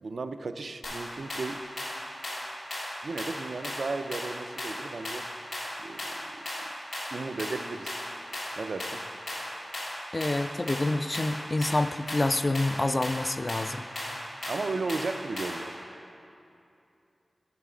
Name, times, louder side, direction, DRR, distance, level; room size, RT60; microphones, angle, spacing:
voice 1, 0.0-1.6 3.0-5.3 5.8-6.4 7.1-8.0 8.6-9.0 14.5-15.7, right 3 dB, 80° right, 8 dB, 0.3 m, -35 dB
sound 1, 0.8-15.7, left 1 dB, 85° left, 1.9 m, -37 dB
voice 2, 10.1-13.9, left 2 dB, 40° left, 11 dB, 0.3 m, -27 dB
9.3 x 5.7 x 4.9 m, 2.7 s
cardioid pair, 50°, 0 cm